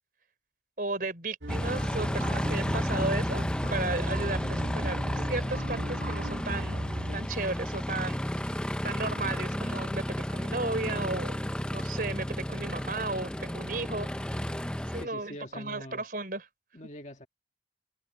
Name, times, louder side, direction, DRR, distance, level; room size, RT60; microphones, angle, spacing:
voice 1, 0.8-6.7 7.1-11.4 11.7-14.3 14.9-16.5, right 2 dB, 50° right, 4.4 m, -35 dB
sound 1, 1.4-7.2, right 1 dB, 85° right, 2.1 m, -37 dB
Aircraft, 1.5-15.0, equal, 5° left, 0.6 m, -32 dB
voice 2, 14.9-16.0 16.7-17.3, equal, 40° left, 2.0 m, -44 dB
head